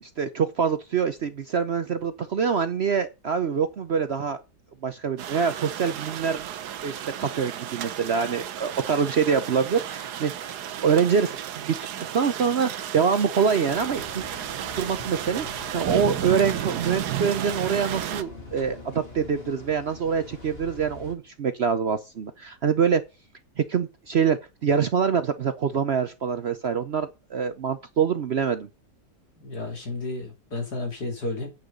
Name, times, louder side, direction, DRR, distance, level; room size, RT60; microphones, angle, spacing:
voice 1, 0.0-4.4 4.8-6.5 6.8-10.5 10.8-14.2 14.7-23.0 23.6-28.7, right 6 dB, 55° right, 0.8 m, -25 dB
sound 1, 5.2-18.2, right 11 dB, 75° right, 1.3 m, -33 dB
sound 2, 13.7-21.1, left 3 dB, 35° left, 2.6 m, -44 dB
voice 2, 29.4-31.5, left 2 dB, 75° left, 3.9 m, -32 dB
8.8 x 6.6 x 5.2 m
omnidirectional pair, 1.7 m